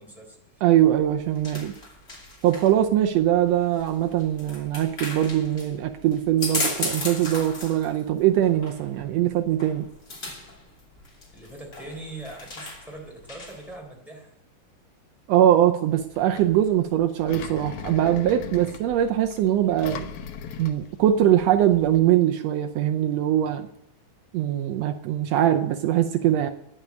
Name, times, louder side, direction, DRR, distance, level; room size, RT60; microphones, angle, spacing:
voice 1, 0.0-0.6 11.3-14.3 18.6-18.7, right 2 dB, ahead, -1 dB, 3.4 m, -42 dB
voice 2, 0.6-1.7 2.4-9.9 15.3-20.1 20.6-23.7 24.3-26.5, right 11 dB, 90° right, 6 dB, 1.5 m, -22 dB
sound 1, 0.8-13.8, left 2 dB, 20° left, 2.7 m, -36 dB
Engine, 15.9-22.0, left 8 dB, 70° left, 2.4 m, -40 dB
10.5 x 8.8 x 9.4 m, 0.79 s
omnidirectional pair, 3.8 m